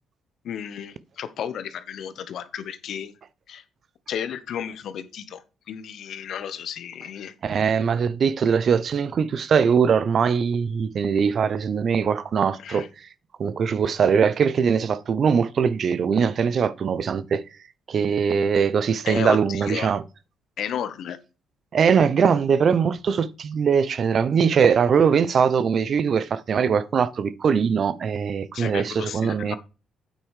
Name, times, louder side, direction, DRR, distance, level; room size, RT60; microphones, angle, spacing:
voice 1, 0.4-3.1 3.5-3.6 4.1-5.4 5.7-7.3 12.6-12.9 19.1-19.9 20.6-21.2 28.5-29.6, left 9 dB, 70° left, 0.9 m, -33 dB
voice 2, 7.4-12.9 13.4-17.4 17.9-20.0 21.7-29.6, right 6 dB, 55° right, 0.7 m, -21 dB
8.9 x 5.3 x 4.9 m
cardioid pair, 90°, 0 cm